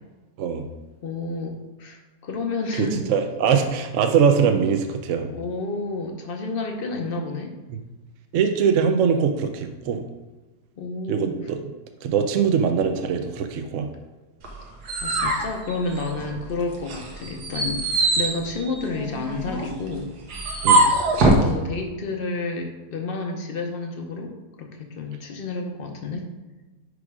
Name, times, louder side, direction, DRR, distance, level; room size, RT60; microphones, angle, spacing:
voice 1, 1.0-3.0 4.3-4.6 5.3-7.6 10.8-11.4 15.0-17.8 18.2-20.1 21.2-26.3, left 3 dB, 45° left, 3 dB, 0.8 m, -30 dB
voice 2, 2.8-5.3 7.7-7.8 8.3-10.0 11.1-11.6 12.0-13.9 20.6-20.9, right 6 dB, 65° right, 6 dB, 0.9 m, -22 dB
sound 1, 14.4-16.4 16.8-21.5, right 2 dB, 90° right, 1.6 m, -23 dB
5.1 x 5.0 x 4.7 m, 1.2 s
omnidirectional pair, 1.7 m